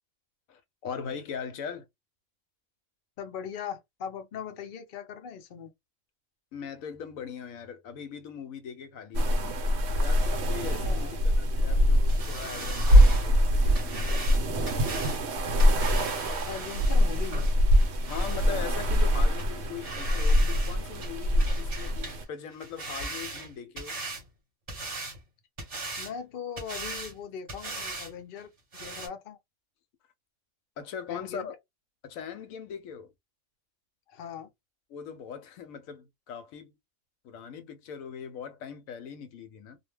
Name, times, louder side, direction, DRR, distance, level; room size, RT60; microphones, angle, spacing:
voice 1, 0.5-1.9 6.5-9.5 9.9-14.5 18.1-24.0 30.8-31.6 32.0-33.1 34.9-36.7 37.2-39.8, left 7 dB, 75° left, 0.9 m, -40 dB
voice 2, 3.2-5.7 10.7-11.2 16.5-17.4 26.0-29.4 31.1-31.5 34.1-34.5, left 7 dB, 55° left, 0.6 m, -40 dB
sound 1, 9.1-22.2, equal, 60° right, 0.9 m, -24 dB
sound 2, 12.1-18.5 19.0-19.1 19.4-19.5 19.8-20.8 21.0-22.2 22.5-24.2 24.7-25.2 25.6-26.1 26.6-27.2 27.5-28.1 28.4-28.5 28.7-29.1, right 2 dB, 30° right, 0.8 m, -39 dB
2.4 x 2.1 x 3.2 m
omnidirectional pair, 1.5 m